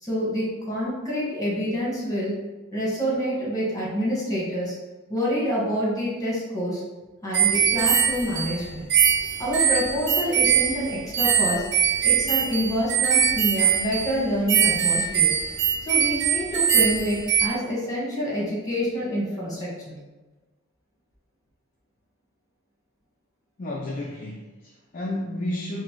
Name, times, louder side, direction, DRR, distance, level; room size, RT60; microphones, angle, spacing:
voice 1, 0.0-2.4 2.7-4.7 5.1-6.8 7.2-8.8 9.4-11.6 12.0-15.3 15.8-20.0, equal, 15° left, -6 dB, 1.3 m, -27 dB
sound 1, 7.3-17.5, right 8 dB, 55° right, 0.4 m, -22 dB
voice 2, 23.6-25.8, left 1 dB, 40° left, -2 dB, 0.3 m, -32 dB
4.0 x 2.1 x 4.5 m, 1.2 s
head